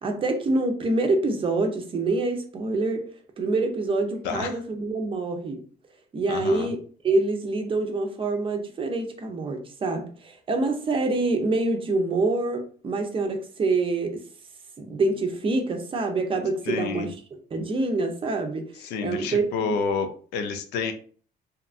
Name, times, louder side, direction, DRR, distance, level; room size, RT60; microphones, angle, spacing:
voice 1, 0.0-3.1 3.4-5.6 6.1-6.8 7.0-14.2 14.8-17.2 17.5-19.6, right 2 dB, 30° right, 4 dB, 0.6 m, -26 dB
voice 2, 6.3-6.7 16.7-17.1 18.8-20.9, left 5 dB, 80° left, 7 dB, 0.5 m, -29 dB
2.8 x 2.3 x 2.4 m, 0.43 s
cardioid pair, 110°, 17 cm